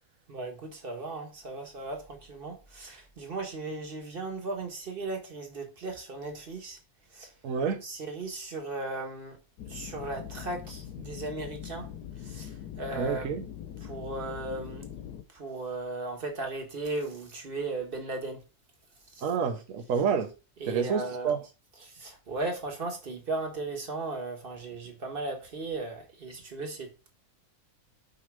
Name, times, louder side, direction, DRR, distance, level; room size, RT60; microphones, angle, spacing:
voice 1, 0.3-6.8 7.1-7.3 7.8-9.4 9.7-11.9 12.2-13.3 13.8-14.8 15.3-18.4 19.1-19.2 20.6-21.3 21.8-27.1, right 2 dB, 35° right, 1.6 m, -36 dB
voice 2, 7.4-7.8 12.9-13.4 19.2-20.3 20.6-21.4, right 6 dB, 60° right, 1.2 m, -28 dB
sound 1, 9.6-15.2, left 9 dB, 80° left, 1.3 m, -42 dB
5.4 x 3.8 x 4.6 m
omnidirectional pair, 1.7 m